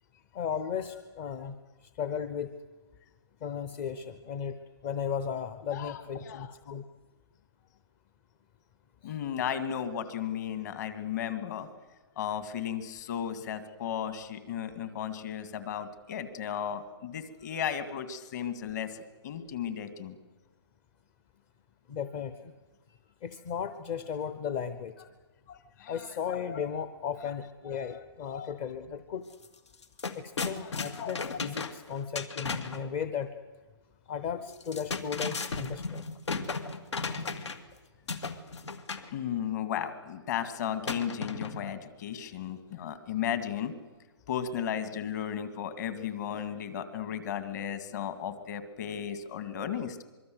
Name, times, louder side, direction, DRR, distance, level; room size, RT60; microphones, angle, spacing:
voice 1, 0.3-1.6 1.8-2.5 3.4-4.6 4.8-6.8 9.0-9.1 21.9-22.5 23.2-24.9 25.5-25.6 25.9-29.3 30.1-33.3 34.1-36.0 37.0-37.2, left 7 dB, 25° left, 11 dB, 0.8 m, -35 dB
voice 2, 5.7-6.5 9.0-11.7 12.2-19.0 19.2-20.2 25.8-26.2 27.9-28.0 30.5-31.1 39.1-43.7 44.3-50.0, left 9 dB, 40° left, 10 dB, 2.3 m, -35 dB
sound 1, 29.3-29.5 29.7-32.8 34.5-37.7 38.1-39.1 40.8-41.8, left 4 dB, 85° left, 2.4 m, -35 dB
24.5 x 23.5 x 8.0 m, 1.2 s
hypercardioid pair, 160°, 14 cm